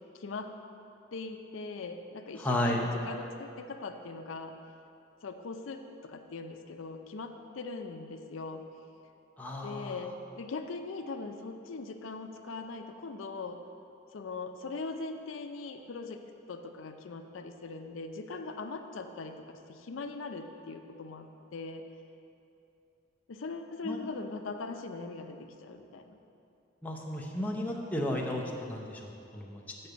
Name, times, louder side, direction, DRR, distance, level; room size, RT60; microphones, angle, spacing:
voice 1, 0.1-0.5 1.1-4.5 5.2-8.6 9.6-13.6 14.1-16.2 16.5-21.8 23.3-26.2, left 3 dB, 85° left, 6 dB, 0.5 m, -40 dB
voice 2, 2.4-2.8 9.4-10.0 23.8-24.0 26.8-29.6, left 1 dB, 10° left, -1 dB, 0.7 m, -33 dB
6.6 x 6.1 x 6.7 m, 2.7 s
head